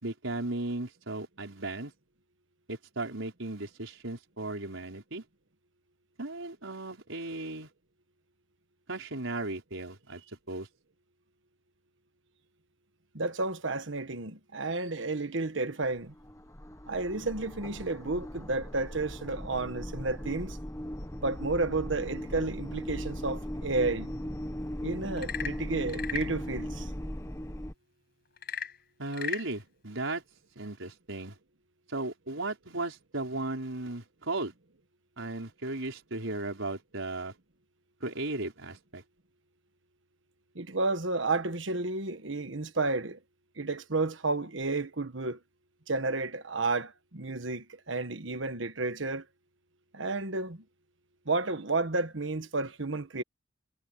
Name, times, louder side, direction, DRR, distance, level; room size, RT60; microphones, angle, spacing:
voice 1, 0.0-1.9 2.7-5.2 6.2-7.7 8.9-10.2 10.5-10.7 29.0-30.2 30.6-31.3 31.9-34.5 35.2-37.3 38.0-39.0, right 2 dB, 85° right, 4.8 m, -36 dB
voice 2, 13.1-16.1 16.9-20.6 21.2-24.1 24.8-26.9 40.5-43.2 43.6-45.4 45.9-49.2 49.9-50.6 51.3-53.2, right 3 dB, 70° right, 1.5 m, -31 dB
sound 1, 15.8-27.7, equal, 15° left, 1.4 m, -38 dB
Frog / Percussion / Wood, 25.1-26.4 28.4-29.5, left 8 dB, 55° left, 5.6 m, -36 dB
head